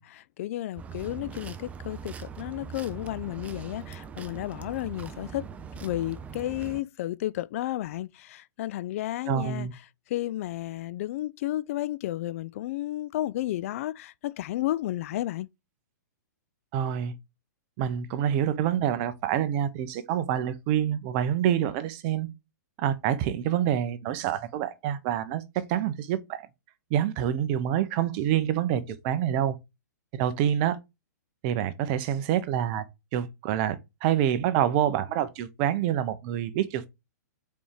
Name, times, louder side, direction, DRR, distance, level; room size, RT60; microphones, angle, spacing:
voice 1, 0.0-5.5 5.8-9.7 10.1-15.5, left 14 dB, 50° left, 0.4 m, -32 dB
sound 1, 0.8-6.8, right 6 dB, 15° right, 0.6 m, -41 dB
voice 2, 9.3-9.7 16.7-17.1 17.8-22.3 22.8-26.5 26.9-29.6 30.1-30.8 31.4-32.9 33.1-36.9, right 10 dB, 40° right, 0.9 m, -27 dB
5.3 x 4.4 x 4.9 m
hypercardioid pair, 135°, 10 cm